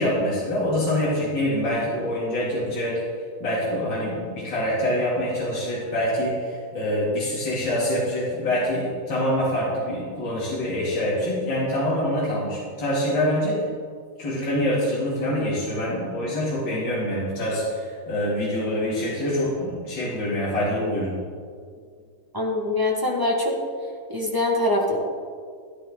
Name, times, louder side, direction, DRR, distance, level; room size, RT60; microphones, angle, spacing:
voice 1, 0.0-3.0 3.4-13.6 14.2-21.1, left 1 dB, 55° left, -8 dB, 3.3 m, -25 dB
voice 2, 22.3-23.5 24.1-25.0, left 2 dB, 10° right, -1 dB, 1.2 m, -23 dB
13.0 x 12.5 x 3.8 m, 2.1 s
omnidirectional pair, 2.4 m